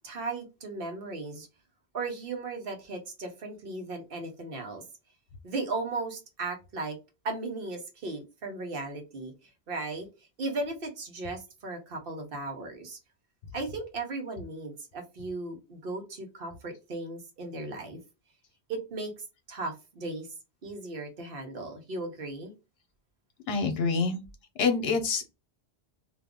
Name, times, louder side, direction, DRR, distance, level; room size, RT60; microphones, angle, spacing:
voice 1, 0.0-1.5 1.9-4.8 5.4-7.0 7.2-9.3 9.7-10.1 10.4-13.0 13.5-18.0 18.7-19.1 19.5-20.3 20.6-22.5, right 3 dB, 60° right, 1.0 m, -36 dB
voice 2, 23.5-24.2 24.6-25.3, left 4 dB, 70° left, 1.0 m, -26 dB
2.6 x 2.4 x 3.5 m
omnidirectional pair, 1.1 m